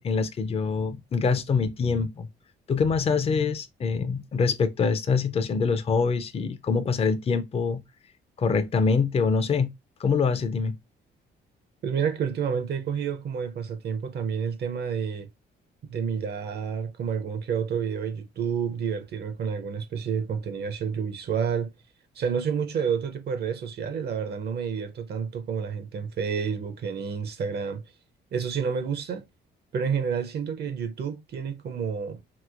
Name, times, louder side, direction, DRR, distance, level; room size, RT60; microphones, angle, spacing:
voice 1, 0.0-2.3 2.7-7.8 8.4-9.7 10.0-10.7, left 5 dB, 30° left, 0.5 m, -25 dB
voice 2, 11.8-15.3 15.8-21.7 22.2-27.8 28.3-29.2 29.7-32.2, right 6 dB, 55° right, 0.6 m, -29 dB
3.0 x 2.9 x 2.4 m
cardioid pair, 90°, 20 cm